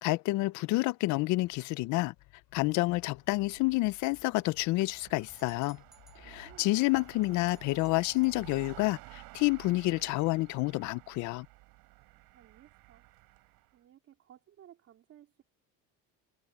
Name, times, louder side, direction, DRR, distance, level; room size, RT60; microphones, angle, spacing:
voice 1, 0.0-2.1 2.5-5.8 6.2-11.5, left 21 dB, 50° left, 0.5 m, -29 dB
sound 1, 1.4-7.2, left 21 dB, 75° left, 2.5 m, -61 dB
sound 2, 3.1-13.7, right 21 dB, 70° right, 7.3 m, -53 dB
sound 3, 5.3-6.2 6.9-8.4, right 1 dB, ahead, 1.9 m, -62 dB
voice 2, 6.2-6.7 12.3-13.1 13.7-15.4, right 11 dB, 40° right, 3.5 m, -58 dB
cardioid pair, 170°, 37 cm